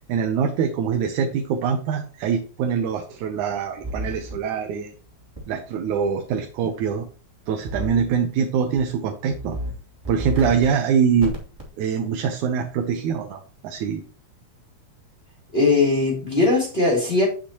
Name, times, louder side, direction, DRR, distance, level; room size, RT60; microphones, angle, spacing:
voice 1, 0.0-4.9 5.5-7.1 7.5-9.6 10.1-11.3 11.8-14.0, right 7 dB, 90° right, 4 dB, 2.4 m, -24 dB
sound 1, 3.8-4.3 5.4-5.5 7.7-8.1 8.5-8.8 9.3-9.7 10.0-10.7 11.2-11.6, equal, 10° right, 2.4 m, -31 dB
voice 2, 15.5-17.3, left 3 dB, 20° left, -2 dB, 2.7 m, -19 dB
8.5 x 7.8 x 2.9 m, 0.38 s
omnidirectional pair, 3.4 m